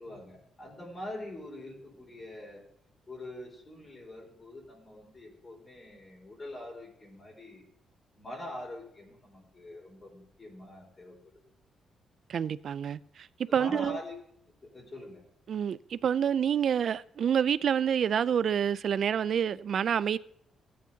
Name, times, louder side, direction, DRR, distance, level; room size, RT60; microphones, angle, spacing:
voice 1, 0.0-2.6 3.1-7.6 8.1-11.1 13.5-14.1 14.6-15.2, left 1 dB, 30° left, 4.1 m, -44 dB
voice 2, 12.3-14.0 15.5-20.2, right 8 dB, 60° right, 0.3 m, -28 dB
16.5 x 8.5 x 2.8 m
cardioid pair, 100°, 0 cm